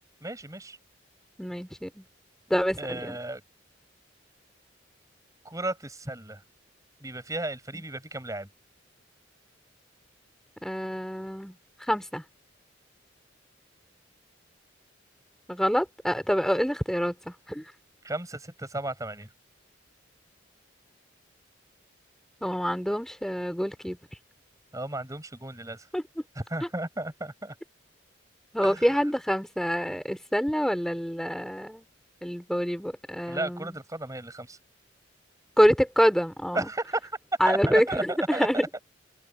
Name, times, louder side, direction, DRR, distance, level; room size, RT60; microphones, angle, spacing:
voice 1, 0.2-0.8 2.8-3.4 5.4-6.4 7.0-8.5 18.0-19.3 24.7-25.9 26.4-27.5 28.6-28.9 33.3-34.6 36.5-37.2 37.5-38.5 38.7-38.8, right 2 dB, 15° right, 7.5 m, -34 dB
voice 2, 1.4-2.0 2.5-3.2 7.7-7.8 10.6-11.5 11.9-12.2 15.5-17.6 22.4-24.0 25.9-26.0 28.5-31.8 32.2-33.7 35.6-36.7 37.4-38.6, equal, ahead, 2.9 m, -26 dB
head